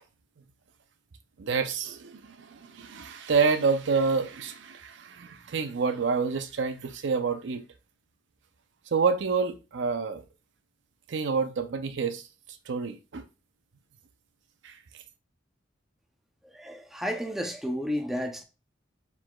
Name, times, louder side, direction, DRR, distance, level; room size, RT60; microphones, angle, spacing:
voice 1, 1.4-7.6 8.9-10.2 11.1-12.2 12.7-13.2 14.6-14.7, right 5 dB, 70° right, 0.5 m, -28 dB
voice 2, 16.5-18.4, equal, ahead, 0.5 m, -32 dB
4.7 x 4.0 x 2.3 m
head